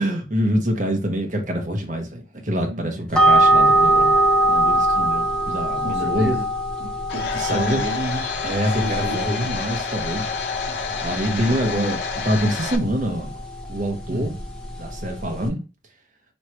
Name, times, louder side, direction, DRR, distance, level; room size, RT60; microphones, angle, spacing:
voice 1, 0.0-4.1 4.5-6.3 7.3-7.8 8.4-10.3 11.0-13.4 13.7-14.3 14.8-15.6, equal, 45° right, 1.0 m, -25 dB
voice 2, 2.6-3.1 5.8-6.5 6.8-8.3 8.7-9.6 10.6-12.0 14.1-14.4, right 1 dB, 65° right, 0.8 m, -31 dB
sound 1, 3.1-15.5, right 1 dB, 5° left, 0.7 m, -23 dB
Domestic sounds home sounds, 7.1-12.8, left 5 dB, 80° left, 1.0 m, -30 dB
3.3 x 3.1 x 4.4 m
head